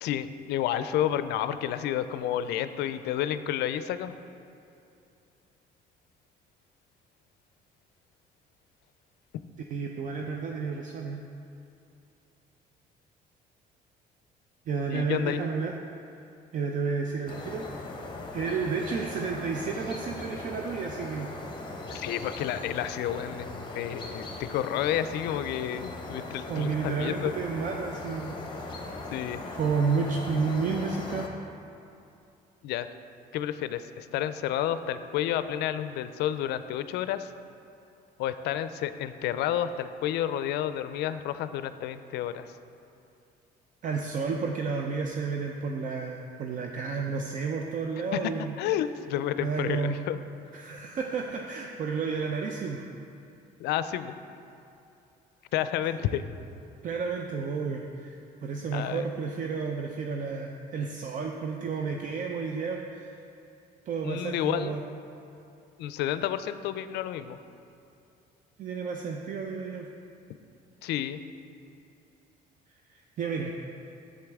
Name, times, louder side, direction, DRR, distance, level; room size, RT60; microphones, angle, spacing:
voice 1, 0.0-4.1 9.3-9.4 14.9-15.4 21.9-27.3 29.1-29.4 32.6-32.9 33.3-37.3 38.2-42.5 48.1-48.2 48.6-50.2 53.6-54.1 55.5-56.2 58.7-59.1 64.0-64.7 65.8-67.4 70.8-71.2, left 11 dB, 80° left, 12 dB, 0.4 m, -30 dB
voice 2, 9.7-11.2 14.7-15.7 16.5-17.7 18.3-21.3 26.5-28.4 28.7-28.8 29.4-31.3 43.8-48.6 49.4-50.0 50.5-52.9 56.0-56.2 56.8-63.2 63.9-64.8 68.6-69.9 72.9-73.5, right 5 dB, 50° right, 2 dB, 0.6 m, -31 dB
sound 1, 17.3-31.3, left 2 dB, 30° left, 1.1 m, -39 dB
8.1 x 7.6 x 3.5 m, 2.7 s
cardioid pair, 110°, 17 cm